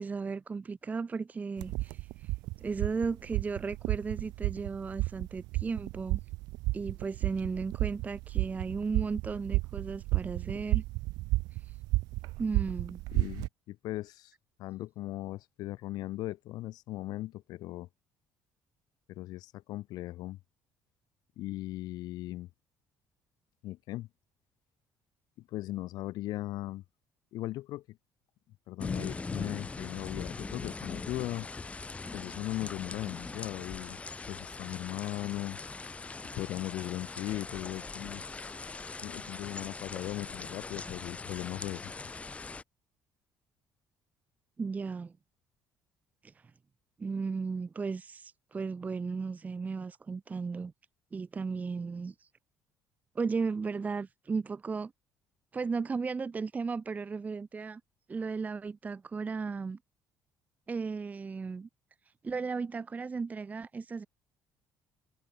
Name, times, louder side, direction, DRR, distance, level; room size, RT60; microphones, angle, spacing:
voice 1, 0.0-2.3 2.6-6.2 6.7-10.8 11.5-11.8 12.4-13.0 44.6-45.1 46.2-46.3 47.0-50.7 51.1-52.3 53.1-54.9 55.5-57.8 58.1-59.8 60.7-61.7 62.2-64.1, right 4 dB, 25° right, 0.6 m, -35 dB
sound 1, 1.6-13.5, right 21 dB, 90° right, 1.8 m, -33 dB
voice 2, 13.1-14.3 14.6-17.9 19.1-20.4 21.4-22.5 23.6-24.1 25.5-26.8 27.3-28.0 28.7-31.5 32.1-34.0 34.3-35.6 36.3-38.2 39.0-41.9, left 16 dB, 75° left, 1.7 m, -38 dB
sound 2, 28.8-42.6, left 3 dB, 20° left, 0.9 m, -41 dB
cardioid pair, 120°, 7 cm